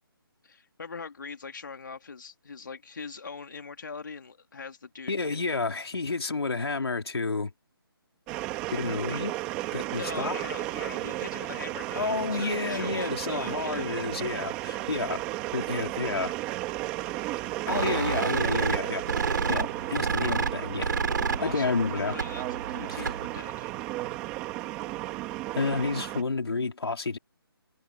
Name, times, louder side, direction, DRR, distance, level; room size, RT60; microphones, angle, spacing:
voice 1, 0.4-5.6 9.9-13.9 16.9-17.1 17.6-18.2 21.4-23.7, left 5 dB, 50° left, 2.8 m, -41 dB
voice 2, 5.1-7.5 8.7-9.3 9.7-10.4 12.0-15.2 15.5-16.3 17.7-19.0 19.5-20.9 21.4-22.1 22.9-23.0 25.5-27.2, left 4 dB, 85° left, 3.6 m, -30 dB
sound 1, 8.3-26.2, right 17 dB, 10° right, 1.6 m, -34 dB
sound 2, 17.7-23.4, right 5 dB, 55° right, 5.0 m, -30 dB
hypercardioid pair, 175°, 13 cm